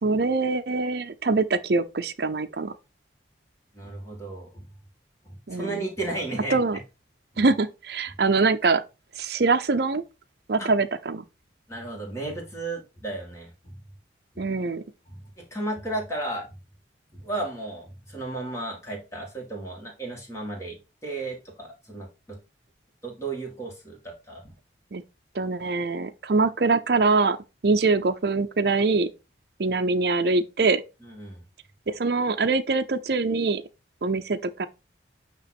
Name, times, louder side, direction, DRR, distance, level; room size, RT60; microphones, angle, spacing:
voice 1, 0.0-2.7 5.5-5.8 6.5-6.8 7.4-8.8 9.2-10.0 10.5-11.2 14.4-14.8 24.9-25.0 25.3-27.4 27.6-29.1 29.6-30.8 31.9-33.6 34.0-34.7, right 3 dB, 60° right, 0.5 m, -23 dB
voice 2, 3.7-4.6 5.3-6.6 10.6-10.7 11.7-13.8 14.3-14.5 15.1-16.5 17.1-20.8 21.0-22.4 23.0-24.4 31.0-31.4, right 2 dB, 15° left, 2.1 m, -34 dB
8.9 x 3.0 x 4.2 m
head